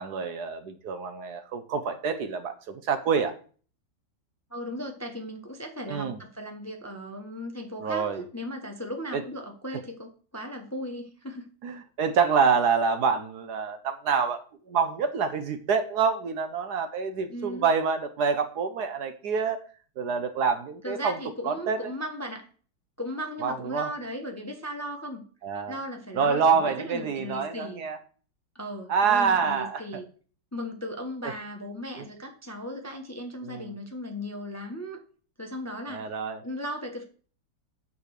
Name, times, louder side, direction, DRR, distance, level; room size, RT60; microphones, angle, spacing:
voice 1, 0.0-3.4 5.9-6.2 7.8-8.2 9.1-9.2 11.6-14.4 14.7-19.6 20.0-21.2 21.4-21.9 23.4-23.9 25.4-25.8 26.1-28.0 28.9-29.8 31.2-31.3 32.0-32.1 33.4-33.7 35.9-36.4, right 5 dB, 65° right, 8 dB, 1.3 m, -26 dB
voice 2, 4.5-11.5 17.3-17.6 20.8-22.5 23.0-25.2 25.7-27.8 28.5-30.1 30.5-35.0 35.4-36.0 36.4-37.0, equal, 10° left, 3 dB, 0.9 m, -37 dB
9.5 x 4.3 x 6.5 m, 0.41 s
omnidirectional pair, 2.0 m